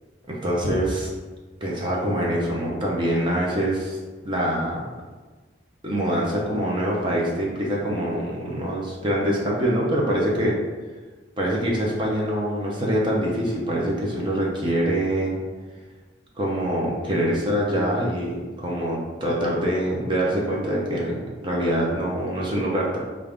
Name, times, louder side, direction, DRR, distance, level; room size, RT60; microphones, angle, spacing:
voice 1, 0.3-1.1 1.6-4.0 4.2-4.8 5.8-10.6 11.4-15.4 16.4-23.0, right 1 dB, 25° right, -3 dB, 0.7 m, -24 dB
5.2 x 2.5 x 3.4 m, 1.3 s
head